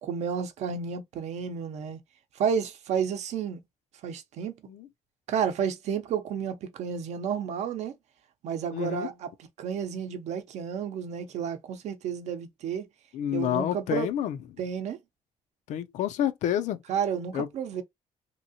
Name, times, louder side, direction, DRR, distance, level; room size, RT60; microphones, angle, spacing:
voice 1, 0.0-2.0 2.3-3.6 4.0-4.6 5.3-8.0 8.4-9.3 9.6-12.9 13.3-14.1 14.6-15.0 16.9-17.8, right 7 dB, 70° right, 0.6 m, -31 dB
voice 2, 8.7-9.1 13.1-14.4 15.7-16.8 17.3-17.5, left 10 dB, 90° left, 0.5 m, -29 dB
2.9 x 2.7 x 2.7 m
cardioid pair, 180°, 12 cm